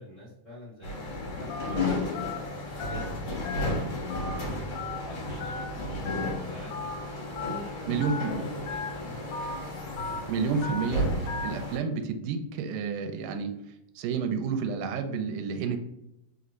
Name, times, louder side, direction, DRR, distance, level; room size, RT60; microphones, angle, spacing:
voice 1, 0.0-2.3 2.8-6.7 7.4-8.0 8.3-9.2, equal, 40° left, -10 dB, 1.1 m, -45 dB
sound 1, 0.8-11.8, left 1 dB, 60° left, 2.4 m, -33 dB
Telephone, 1.5-1.7 2.1-2.4 2.8-3.0 3.4-3.7 4.1-4.3 4.7-5.0 5.4-5.6 6.1-6.3 6.7-6.9 7.4-7.6 8.0-8.2 8.7-8.9 9.3-9.5 10.0-10.2 10.6-10.8 11.3-11.5, left 4 dB, 80° left, 2.1 m, -35 dB
voice 2, 7.9-8.5 10.3-13.5 14.0-15.8, right 5 dB, 85° right, 6 dB, 2.1 m, -30 dB
5.3 x 2.5 x 3.0 m, 0.85 s
omnidirectional pair, 3.7 m